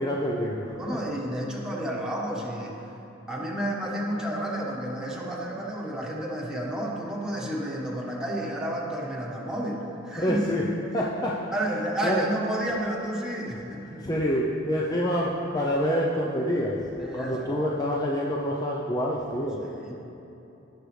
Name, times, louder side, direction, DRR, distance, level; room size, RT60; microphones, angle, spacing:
voice 1, 0.0-0.7 10.2-10.7 10.9-12.3 14.0-19.8, equal, 20° left, -4 dB, 0.7 m, -27 dB
voice 2, 0.8-2.8 3.3-10.4 11.5-14.1 17.0-17.6 19.6-20.0, right 1 dB, 5° right, -4 dB, 1.4 m, -31 dB
18.0 x 6.3 x 3.3 m, 3.0 s
head